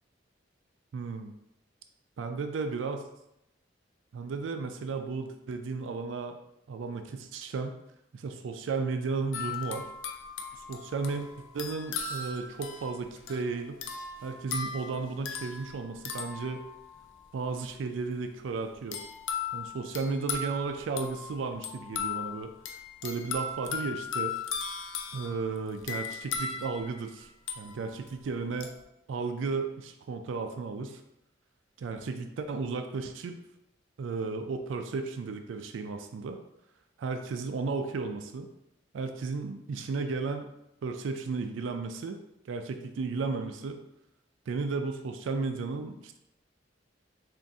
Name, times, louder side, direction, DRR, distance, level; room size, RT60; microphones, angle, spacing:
voice 1, 0.9-1.3 2.2-3.0 4.1-6.4 6.7-7.8 8.1-9.9 10.7-11.3 11.5-13.8 14.2-16.6 17.3-19.0 19.5-22.5 23.0-24.3 25.1-27.3 27.6-28.7 29.1-31.0 31.8-33.4 34.0-36.4 37.0-38.5 38.9-40.5 40.8-42.2 42.4-43.8 44.5-46.2, right 4 dB, 90° right, 6 dB, 0.4 m, -34 dB
sound 1, 9.3-17.2 18.9-28.1 28.6-28.8, left 5 dB, 85° left, 0.4 m, -38 dB
3.9 x 2.5 x 3.5 m, 0.84 s
head